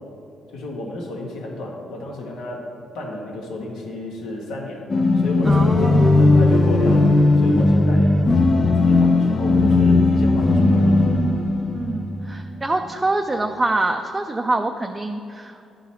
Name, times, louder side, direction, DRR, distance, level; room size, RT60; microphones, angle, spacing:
voice 1, 0.5-2.6 2.9-4.8 5.1-7.1 7.4-8.1 8.5-11.1, left 1 dB, 85° left, -1 dB, 1.4 m, -32 dB
sound 1, 4.9-12.5, left 2 dB, 40° left, 0.5 m, -17 dB
voice 2, 5.5-6.4 11.7-15.6, right 2 dB, 20° right, 4 dB, 0.4 m, -25 dB
11.0 x 4.0 x 4.3 m, 2.6 s
cardioid pair, 90°, 0 cm